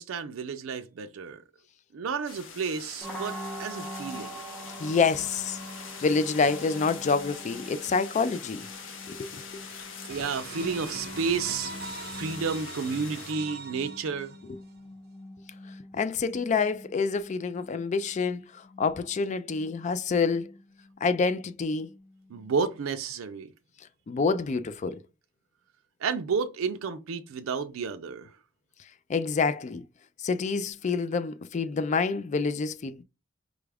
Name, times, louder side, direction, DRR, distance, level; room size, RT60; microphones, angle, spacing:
voice 1, 0.0-1.4 1.9-4.3 10.1-11.7 12.1-14.3 22.3-23.5 26.0-28.3, right 5 dB, 85° right, 0.4 m, -31 dB
sound 1, 2.3-13.3, left 6 dB, 65° left, 0.8 m, -43 dB
sound 2, 3.0-22.8, equal, 5° left, 0.9 m, -45 dB
voice 2, 4.8-5.6 6.0-8.6 9.1-9.4 15.9-18.4 18.8-20.5 21.0-21.9 24.1-25.0 29.1-29.8 30.2-33.0, left 4 dB, 35° left, 0.3 m, -27 dB
sound 3, 10.1-14.7, right 3 dB, 50° right, 0.7 m, -42 dB
5.0 x 2.3 x 3.3 m
head